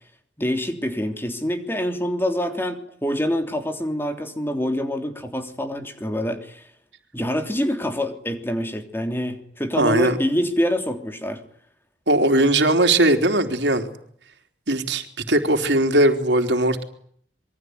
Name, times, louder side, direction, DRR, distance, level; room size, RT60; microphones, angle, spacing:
voice 1, 0.4-6.7 7.1-11.4, equal, 15° left, 6 dB, 3.2 m, -26 dB
voice 2, 9.8-10.2 12.1-13.9 14.7-16.8, right 1 dB, 75° right, 6 dB, 3.6 m, -19 dB
27.0 x 23.0 x 9.5 m, 0.63 s
head